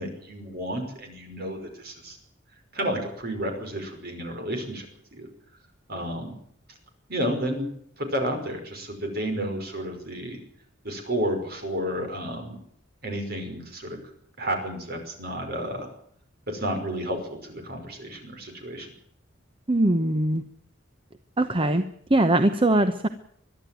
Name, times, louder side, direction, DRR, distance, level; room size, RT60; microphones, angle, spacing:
voice 1, 0.0-2.2 2.7-4.9 5.1-5.3 5.9-6.3 7.1-7.7 8.0-10.4 10.8-12.6 13.0-14.0 14.4-15.9 16.5-18.9, equal, 50° right, 5 dB, 5.6 m, -31 dB
voice 2, 19.7-20.4 21.4-21.8 22.1-23.1, right 1 dB, 25° right, 9 dB, 0.9 m, -21 dB
22.5 x 12.5 x 9.3 m, 0.68 s
head